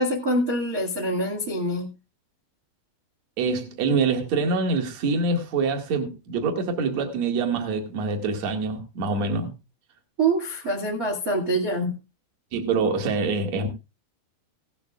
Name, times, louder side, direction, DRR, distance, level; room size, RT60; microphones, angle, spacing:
voice 1, 0.0-1.9 10.2-11.9, right 1 dB, 75° right, 0.8 m, -25 dB
voice 2, 3.4-9.5 12.5-13.7, right 4 dB, 50° right, 2.2 m, -25 dB
17.0 x 12.0 x 2.4 m
omnidirectional pair, 5.8 m